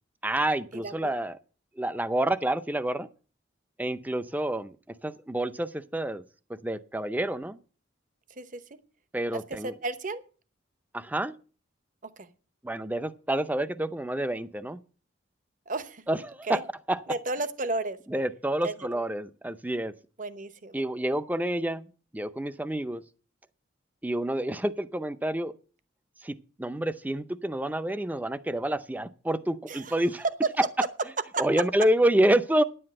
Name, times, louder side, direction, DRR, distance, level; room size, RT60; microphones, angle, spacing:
voice 1, 0.2-1.4 1.8-3.1 3.8-4.8 5.0-6.2 6.6-7.6 9.1-9.7 10.9-11.4 12.6-14.8 16.1-17.0 18.1-19.9 20.7-21.9 22.1-23.0 24.0-25.6 26.2-30.2 30.6-30.7 31.4-32.6, right 1 dB, 10° right, 0.5 m, -28 dB
voice 2, 9.6-10.2 12.2-12.3 15.7-16.0 16.5-16.6 17.1-18.0 18.6-18.7 20.2-20.7 29.7-30.0 30.4-30.5 31.3-31.4, right 3 dB, 45° right, 0.9 m, -32 dB
10.5 x 7.9 x 7.6 m
head